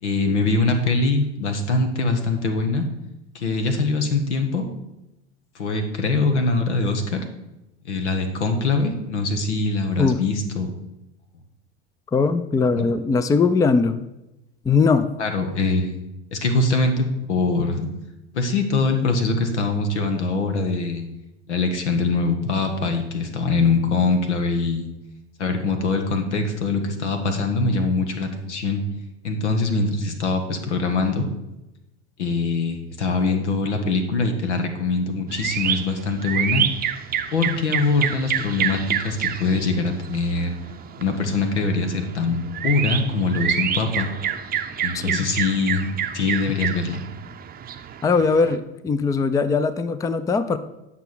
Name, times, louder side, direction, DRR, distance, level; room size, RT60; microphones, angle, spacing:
voice 1, 0.0-2.8 3.3-4.7 5.5-7.2 7.8-10.7 12.7-12.9 15.2-16.0 16.3-17.9 18.3-21.0 21.5-24.9 25.4-28.8 29.2-31.3 32.2-36.6 37.3-40.5 41.0-44.1 44.8-45.8 46.1-47.0, left 3 dB, 85° left, 6 dB, 1.5 m, -23 dB
voice 2, 12.1-14.0 14.7-15.1 44.9-45.3 48.0-50.6, left 4 dB, 10° left, 13 dB, 0.4 m, -20 dB
sound 1, 35.3-48.6, right 9 dB, 25° right, 0.7 m, -28 dB
9.0 x 5.8 x 6.1 m, 0.95 s
hypercardioid pair, 90°, 34 cm